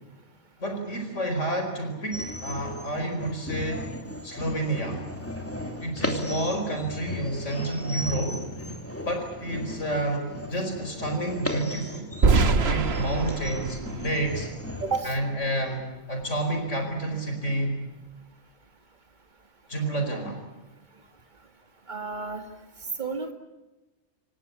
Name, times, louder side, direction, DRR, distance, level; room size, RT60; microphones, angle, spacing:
voice 1, 0.6-3.9 4.2-5.0 5.8-8.4 9.0-12.1 12.6-14.5 15.0-17.8 19.7-20.4, right 1 dB, 90° left, 5 dB, 5.1 m, -29 dB
sound 1, 2.1-15.0, left 1 dB, 10° left, 2.9 m, -36 dB
sound 2, 12.2-15.2, right 4 dB, 60° right, 1.5 m, -24 dB
voice 2, 14.8-15.2 21.9-22.5 23.0-23.3, right 4 dB, 40° right, 5 dB, 2.5 m, -31 dB
27.5 x 19.0 x 8.5 m, 1.1 s
omnidirectional pair, 1.2 m